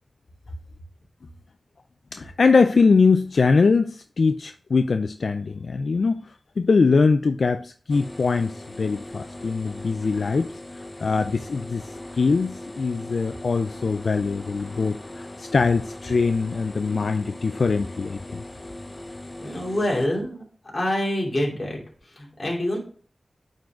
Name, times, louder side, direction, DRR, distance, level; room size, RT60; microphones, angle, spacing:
voice 1, 2.1-10.5 11.0-18.4, left 4 dB, 80° left, 8 dB, 0.3 m, -22 dB
sound 1, 7.9-20.1, left 1 dB, 30° left, 0.7 m, -39 dB
voice 2, 19.4-20.4 20.7-22.8, left 1 dB, 45° left, -2 dB, 2.7 m, -26 dB
9.1 x 3.9 x 3.5 m, 0.43 s
wide cardioid pair, 60°, 0 cm